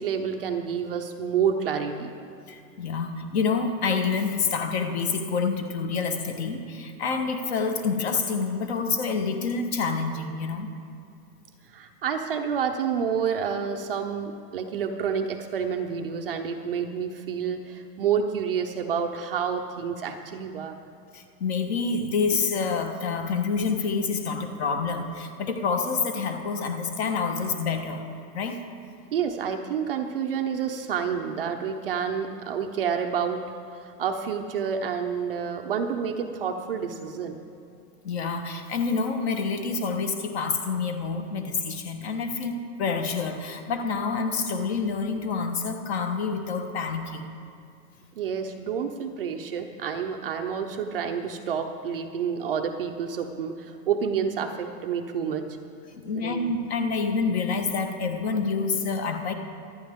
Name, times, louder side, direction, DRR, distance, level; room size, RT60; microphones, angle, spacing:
voice 1, 0.0-2.1 11.7-20.8 29.1-33.4 33.7-37.4 48.2-55.5 56.1-56.4, right 7 dB, 35° right, 4 dB, 0.6 m, -29 dB
voice 2, 2.5-10.7 21.1-28.0 28.3-28.6 38.0-42.5 42.8-47.3 55.9-59.3, left 5 dB, 40° left, 6 dB, 1.3 m, -27 dB
25.5 x 9.7 x 3.6 m, 2.5 s
supercardioid pair, 170°, 49 cm